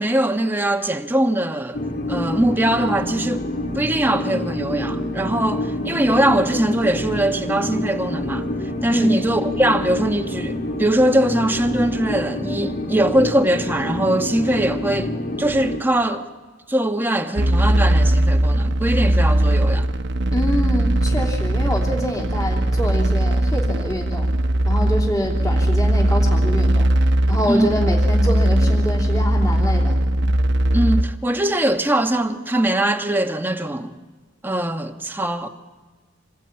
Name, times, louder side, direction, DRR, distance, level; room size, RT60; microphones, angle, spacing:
voice 1, 0.0-1.8 2.1-3.5 3.7-8.5 8.8-16.3 16.7-19.9 27.5-27.8 30.7-33.9 34.4-35.5, right 1 dB, 10° right, 1.2 m, -21 dB
sound 1, 1.7-15.8, left 1 dB, 50° left, 2.2 m, -27 dB
sound 2, 17.4-31.0, right 1 dB, 60° right, 1.1 m, -19 dB
voice 2, 20.3-24.3 24.6-26.9 27.3-30.0, equal, 20° left, 3.1 m, -25 dB
26.5 x 20.0 x 8.7 m
head